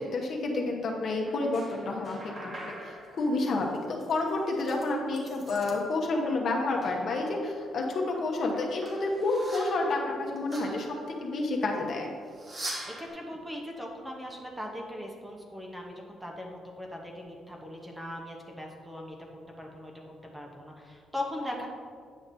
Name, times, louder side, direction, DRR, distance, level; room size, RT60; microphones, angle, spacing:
voice 1, 0.0-10.9 11.2-12.1, left 2 dB, 55° left, 0 dB, 1.0 m, -29 dB
sound 1, 1.2-5.8 6.1-7.3 7.7-11.4 12.3-13.1, right 1 dB, 30° right, 1.2 m, -44 dB
voice 2, 12.8-21.7, left 1 dB, 10° right, 0 dB, 0.8 m, -40 dB
9.0 x 5.9 x 2.7 m, 2.1 s
cardioid pair, 120°, 0 cm